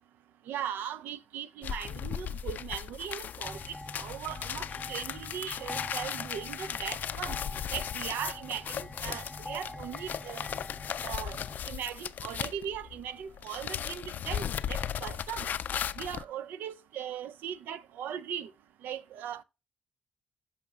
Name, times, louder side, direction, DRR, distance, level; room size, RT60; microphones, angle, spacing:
voice 1, 0.5-3.6 3.9-7.4 7.7-10.5 11.0-11.4 11.7-15.5 16.0-18.5 18.8-19.4, right 9 dB, 85° right, 0.4 m, -39 dB
sound 1, 1.6-13.1 13.3-16.2, left 9 dB, 70° left, 0.3 m, -37 dB
sound 2, 3.4-11.6, left 1 dB, 5° left, 0.7 m, -45 dB
9.1 x 5.8 x 2.8 m
cardioid pair, 60°, 3 cm